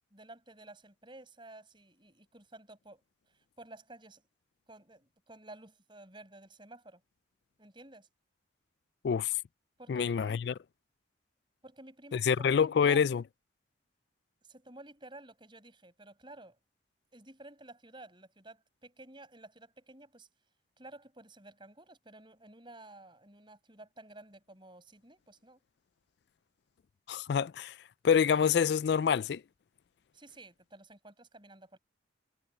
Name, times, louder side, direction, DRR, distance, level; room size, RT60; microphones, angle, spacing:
voice 1, 0.1-3.0 3.3-4.2 4.7-7.0 7.6-8.1 9.8-10.4 11.6-12.5 12.8-13.1 14.4-16.6 17.1-20.3 20.8-25.6 30.1-31.8, right 2 dB, 25° right, 7.0 m, -52 dB
voice 2, 9.9-10.5 12.1-13.2 27.1-27.8 28.0-29.4, left 7 dB, 60° left, 0.3 m, -26 dB
head